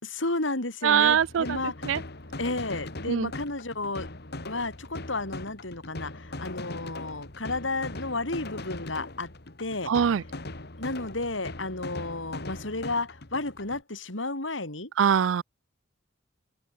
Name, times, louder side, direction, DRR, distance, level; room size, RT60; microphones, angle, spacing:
voice 1, 0.0-1.7 2.4-4.1 4.4-9.3 9.6-9.9 10.8-14.9, left 2 dB, 80° left, 4.6 m, -32 dB
voice 2, 0.8-1.6 1.8-2.0 3.1-3.3 9.9-10.2 15.0-15.4, right 8 dB, 85° right, 0.4 m, -22 dB
sound 1, 1.0-13.8, left 2 dB, 60° left, 2.5 m, -40 dB
open air
head